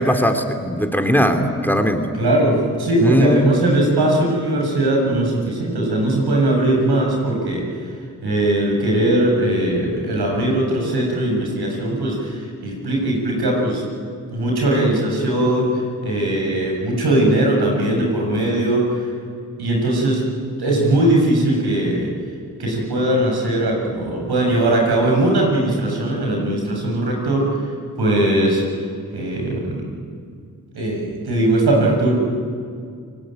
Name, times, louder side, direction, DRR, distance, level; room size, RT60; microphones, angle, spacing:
voice 1, 0.0-2.1 3.0-3.5, equal, 5° left, 6 dB, 3.1 m, -18 dB
voice 2, 2.2-7.6 8.2-13.8 14.3-15.7 16.0-18.9 19.6-20.2 20.6-22.1 22.6-27.5 28.0-28.6 29.1-29.8 30.7-32.1, right 1 dB, 90° right, 0 dB, 7.0 m, -19 dB
29.5 x 19.0 x 9.1 m, 2.2 s
cardioid pair, 40°, 37 cm